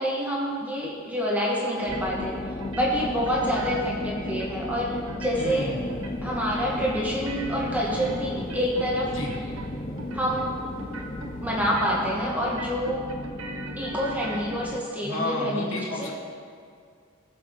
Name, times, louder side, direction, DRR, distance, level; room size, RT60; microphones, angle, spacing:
voice 1, 0.0-2.4 2.7-5.8 6.2-9.2 10.1-10.6 11.4-13.0 13.8-16.1, equal, 5° right, -4 dB, 2.1 m, -27 dB
sound 1, 1.8-2.3 2.6-3.9 4.3-4.8 5.1-5.6 5.9-6.4 6.7-8.9 9.2-9.7 10.0-10.5 10.8-11.3 11.6-12.2 12.4-14.6, right 2 dB, 70° right, 1.2 m, -40 dB
sound 2, 1.9-14.8, left 2 dB, 20° left, 0.4 m, -35 dB
voice 2, 5.4-5.8 9.1-9.3 15.0-16.1, left 2 dB, 70° left, -2 dB, 2.2 m, -31 dB
sound 3, 5.5-12.3, right 1 dB, 40° right, 1.7 m, -43 dB
20.0 x 7.3 x 4.2 m, 2.2 s
head